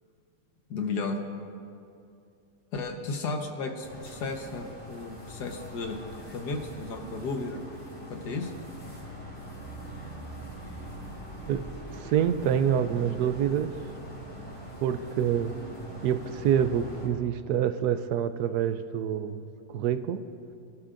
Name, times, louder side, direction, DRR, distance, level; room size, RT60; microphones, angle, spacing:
voice 1, 0.7-1.2 2.7-7.6 8.1-8.5, left 3 dB, 90° left, 4 dB, 1.8 m, -34 dB
sound 1, 3.8-17.1, equal, 20° left, 3.7 m, -42 dB
voice 2, 11.9-13.7 14.8-15.5 16.0-20.2, right 9 dB, 80° right, 11 dB, 1.2 m, -27 dB
25.5 x 12.5 x 2.6 m, 2.5 s
omnidirectional pair, 1.7 m